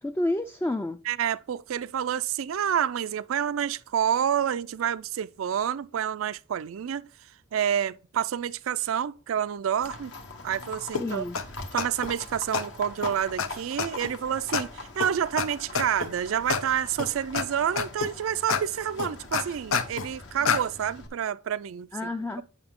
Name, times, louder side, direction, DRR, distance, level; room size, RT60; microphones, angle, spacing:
voice 1, 0.0-1.0 11.0-11.4 21.9-22.4, left 1 dB, 10° left, 0.3 m, -29 dB
voice 2, 1.1-7.0 7.5-10.1 10.4-11.2 11.7-22.1, right 9 dB, 85° right, 0.4 m, -28 dB
Livestock farm animals working animals, 9.8-21.1, left 3 dB, 65° left, 1.3 m, -42 dB
sound 1, 10.9-11.0 11.3-11.4 11.8-12.1 12.5-12.6 13.0-13.1 13.4-13.5 13.8-14.1 14.5-14.6 15.0-15.1 15.4-15.5 15.7-16.1 16.5-16.6 17.0-17.4 17.8-18.1 18.5-18.6 19.0-20.1 20.4-20.6, left 5 dB, 85° left, 0.7 m, -27 dB
8.9 x 5.7 x 3.6 m
head